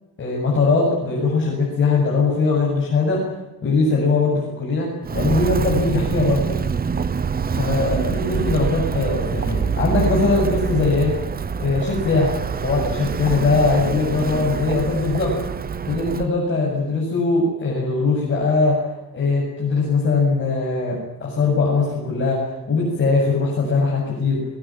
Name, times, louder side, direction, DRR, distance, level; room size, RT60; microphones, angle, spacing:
voice 1, 0.2-3.3 3.6-6.6 7.5-11.1 11.6-12.3 12.6-15.3 15.9-18.8 19.1-24.4, left 3 dB, 35° left, -3 dB, 7.8 m, -20 dB
Walk footsteps, 5.0-16.3, right 6 dB, 25° right, 0.8 m, -25 dB
22.0 x 22.0 x 9.1 m, 1.0 s
cardioid pair, 165°, 35 cm